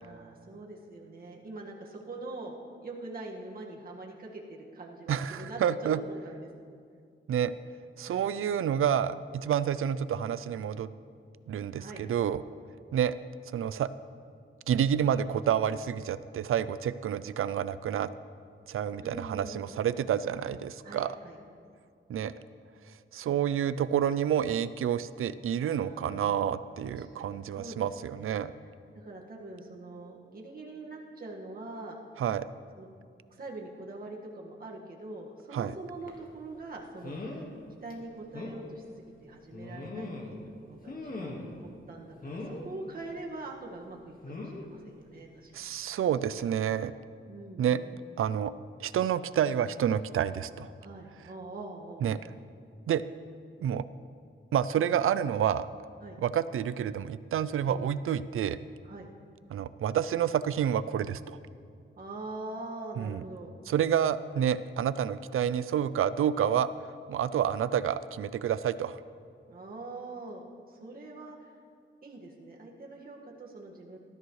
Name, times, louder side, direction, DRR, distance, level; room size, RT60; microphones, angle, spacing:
voice 1, 0.0-5.6 6.0-6.5 8.1-8.3 11.8-12.0 19.0-19.7 20.8-21.4 23.2-23.4 25.6-26.4 27.0-28.4 28.9-32.0 32.8-32.9 33.3-37.4 37.8-45.7 47.3-47.9 50.8-52.1 56.0-56.2 57.7-57.8 58.8-59.1 62.0-63.5 69.5-71.5 72.0-74.0, right 2 dB, 45° right, -2 dB, 1.8 m, -44 dB
voice 2, 5.1-6.0 7.3-7.5 8.0-10.9 11.5-12.4 12.9-13.1 13.5-13.9 14.7-18.1 18.7-21.2 22.1-22.3 23.1-28.5 32.2-32.4 35.5-35.7 45.5-46.9 47.6-47.8 48.2-48.5 48.8-50.7 52.0-52.2 52.9-53.0 53.6-53.8 54.5-55.7 56.2-58.6 59.5-61.4 63.0-63.2 63.7-66.7 67.1-69.0, right 9 dB, 85° right, 15 dB, 0.5 m, -29 dB
sound 1, 36.1-36.2 37.0-37.5 37.9-38.0 38.3-38.6 39.5-40.4 40.9-41.6 42.2-42.7 44.2-44.7 45.8-46.0 46.4-46.5, left 2 dB, 45° left, 1.8 m, -40 dB
19.0 x 13.0 x 3.2 m, 2.3 s
wide cardioid pair, 130°, 21 cm